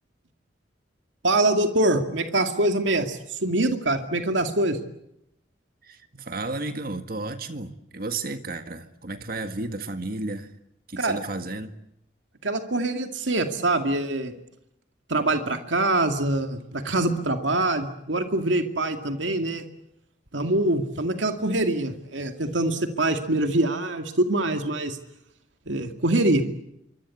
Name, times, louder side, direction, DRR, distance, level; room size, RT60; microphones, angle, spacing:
voice 1, 1.2-4.8 11.0-11.2 12.4-14.3 15.1-19.7 20.3-25.0 25.7-26.4, right 2 dB, 90° right, 6 dB, 2.3 m, -24 dB
voice 2, 5.8-10.5 10.9-11.7, right 2 dB, 50° right, 8 dB, 1.8 m, -33 dB
27.0 x 24.5 x 8.5 m, 0.80 s
head